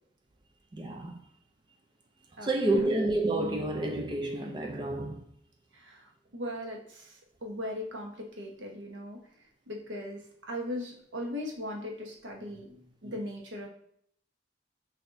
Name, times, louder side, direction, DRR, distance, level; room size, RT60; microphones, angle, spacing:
voice 1, 0.7-1.2 2.4-5.3, right 2 dB, 25° right, 0.5 m, -29 dB
voice 2, 2.4-3.0 5.7-9.2 9.7-13.7, left 1 dB, 85° right, 1.1 m, -39 dB
5.9 x 2.7 x 2.6 m
head